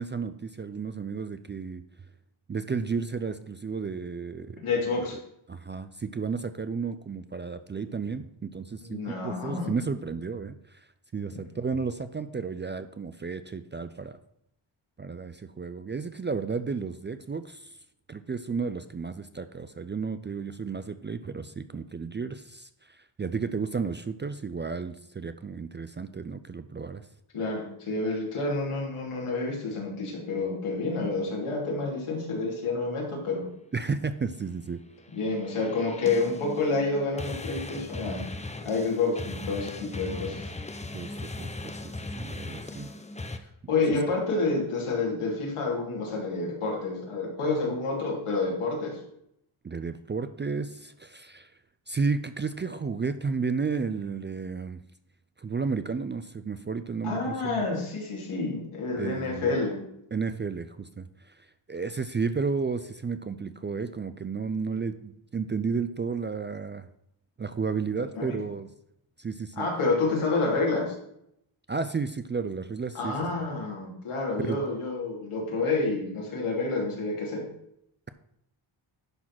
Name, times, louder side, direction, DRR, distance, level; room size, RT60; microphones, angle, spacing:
voice 1, 0.0-1.8 2.5-4.7 5.5-10.8 11.1-14.2 15.0-17.7 18.1-27.1 33.7-34.8 40.9-42.9 49.6-51.5 51.9-54.8 55.4-57.6 59.0-59.6 60.1-61.3 61.7-66.9 67.4-68.7 69.2-69.7 71.7-73.2 74.4-74.6, right 5 dB, 25° right, 11 dB, 0.4 m, -32 dB
voice 2, 4.6-5.2 8.8-9.8 27.3-33.5 35.1-38.3 38.6-40.5 43.7-49.0 57.0-59.8 68.2-68.3 69.6-70.9 72.9-77.4, left 3 dB, 80° left, -2 dB, 3.2 m, -29 dB
sound 1, 35.0-43.4, left 2 dB, 15° left, 0.7 m, -38 dB
11.0 x 4.0 x 6.0 m, 0.77 s
cardioid pair, 90°, 49 cm